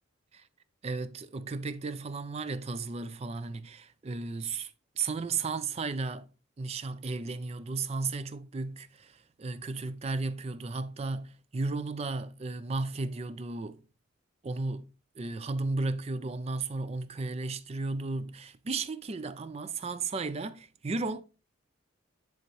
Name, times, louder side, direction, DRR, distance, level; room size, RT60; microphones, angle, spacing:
voice 1, 0.8-6.3 6.6-13.8 14.4-21.2, right 3 dB, 30° right, 0.4 m, -34 dB
10.5 x 3.5 x 3.0 m
head